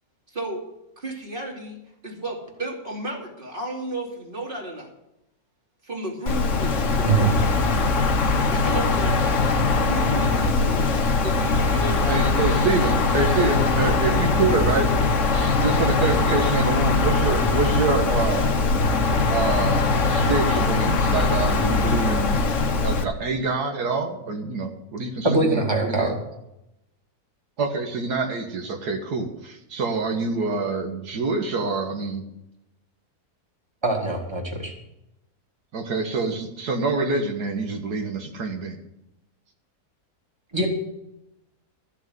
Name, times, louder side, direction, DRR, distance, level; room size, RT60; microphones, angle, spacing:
voice 1, 0.3-0.6 1.0-4.9 5.8-7.4 8.5-9.2 9.8-10.9 11.2-12.2, right 1 dB, 35° right, 0 dB, 2.9 m, -33 dB
Wind, 6.3-23.0, left 3 dB, 55° left, 1.4 m, -21 dB
voice 2, 12.1-14.9 15.3-18.5 19.3-22.4 22.8-26.1 27.6-32.3 35.7-38.8, right 3 dB, 85° right, 4 dB, 2.1 m, -26 dB
voice 3, 25.2-26.1 33.8-34.7 40.5-40.7, right 3 dB, 15° right, 0 dB, 2.5 m, -22 dB
13.5 x 6.6 x 9.4 m, 0.88 s
omnidirectional pair, 1.6 m